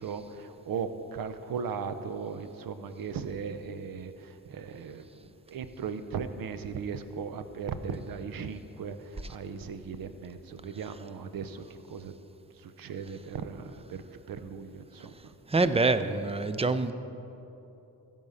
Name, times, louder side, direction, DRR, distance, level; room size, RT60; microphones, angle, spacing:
voice 1, 0.0-12.1 12.6-15.3, right 6 dB, 65° right, 10 dB, 0.8 m, -38 dB
voice 2, 15.5-16.9, right 3 dB, 15° right, 11 dB, 0.5 m, -25 dB
15.5 x 5.6 x 5.6 m, 3.0 s
cardioid pair, 70°, 37 cm